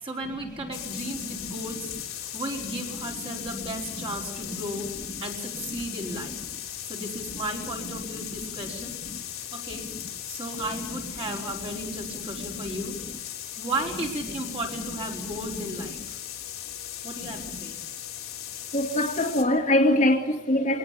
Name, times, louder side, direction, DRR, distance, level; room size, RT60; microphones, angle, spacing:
voice 1, 0.0-4.9 5.2-6.4 6.9-9.0 9.5-9.9 10.3-13.0 13.6-16.2 17.0-17.8, right 1 dB, 25° right, 4.9 m, -34 dB
sound 1, 0.7-19.4, left 11 dB, 90° left, 3.3 m, -38 dB
voice 2, 18.7-20.8, left 1 dB, 35° left, 2.2 m, -22 dB
22.5 x 18.0 x 8.6 m
head